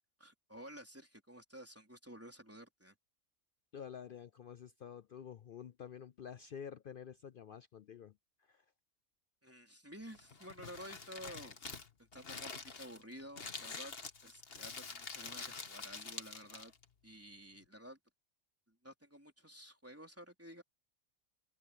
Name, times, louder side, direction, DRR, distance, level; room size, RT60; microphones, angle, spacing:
voice 1, 0.2-2.9 9.4-11.6 12.0-13.9 14.2-16.7 17.0-18.0 18.7-20.6, equal, 10° right, 3.9 m, -52 dB
voice 2, 3.7-8.6, left 8 dB, 65° left, 0.5 m, -49 dB
Crumpling crinkling, 10.1-16.8, left 4 dB, 45° left, 1.6 m, -47 dB
open air
omnidirectional pair, 1.4 m